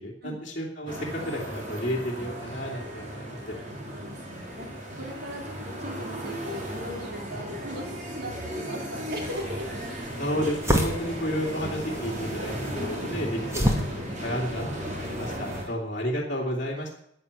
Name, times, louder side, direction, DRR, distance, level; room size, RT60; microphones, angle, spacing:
voice 1, 0.0-3.6 10.2-16.9, equal, 40° left, -4 dB, 2.8 m, -32 dB
sound 1, 0.9-15.6, equal, 40° right, 3.9 m, -36 dB
voice 2, 3.6-4.7 5.0-9.8 15.6-15.8, equal, 55° right, 2 dB, 3.0 m, -39 dB
sound 2, 9.3-15.7, equal, 15° right, 2.1 m, -31 dB
11.0 x 10.5 x 8.4 m, 0.75 s
head